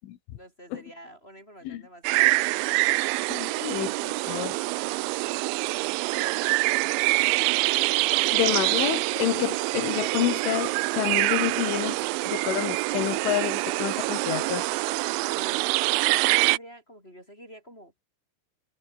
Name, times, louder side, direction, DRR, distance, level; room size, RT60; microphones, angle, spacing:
voice 1, 0.3-5.2 6.2-7.6 15.3-17.9, equal, 10° left, 5.2 m, -47 dB
sound 1, 2.0-16.6, right 24 dB, 90° right, 2.6 m, -25 dB
voice 2, 3.3-3.9 4.3-4.5 8.3-14.7, left 13 dB, 75° left, 4.0 m, -28 dB
omnidirectional pair, 5.8 m